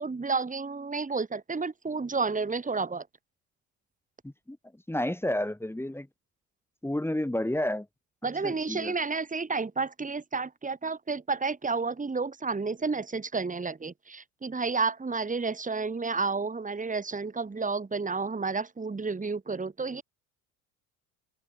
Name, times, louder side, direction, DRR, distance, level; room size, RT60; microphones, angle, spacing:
voice 1, 0.0-3.1 8.2-20.0, right 4 dB, 20° right, 3.4 m, -31 dB
voice 2, 4.2-4.6 4.9-6.1 6.8-7.9 8.4-8.9, left 1 dB, 5° left, 4.2 m, -30 dB
open air
supercardioid pair, 75°, 40 cm